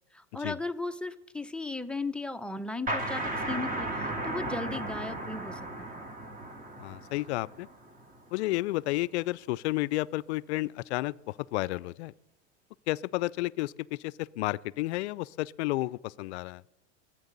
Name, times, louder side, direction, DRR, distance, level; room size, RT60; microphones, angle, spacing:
voice 1, 0.1-6.0, left 3 dB, 5° left, 7 dB, 0.6 m, -36 dB
sound 1, 2.9-8.3, right 2 dB, 25° right, 2.1 m, -35 dB
voice 2, 6.8-7.7 8.3-12.1 12.9-16.6, left 19 dB, 70° left, 22 dB, 0.5 m, -31 dB
24.5 x 9.0 x 4.0 m, 1.0 s
hypercardioid pair, 105°, 34 cm